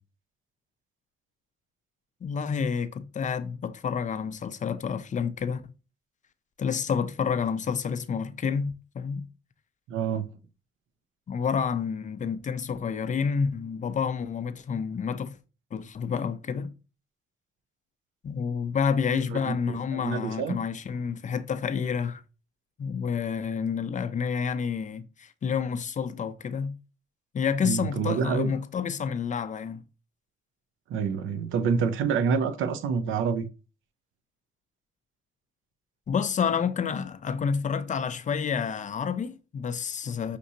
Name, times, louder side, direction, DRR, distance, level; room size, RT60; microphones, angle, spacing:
voice 1, 2.2-5.6 6.6-9.3 11.3-15.3 15.7-16.7 18.2-22.2 22.8-26.7 27.3-29.8 36.1-40.4, left 6 dB, 40° left, 0.5 m, -29 dB
voice 2, 9.9-10.3 19.1-20.6 27.6-28.5 30.9-33.5, right 6 dB, 80° right, 0.6 m, -27 dB
5.9 x 2.7 x 2.7 m
cardioid pair, 90°, 20 cm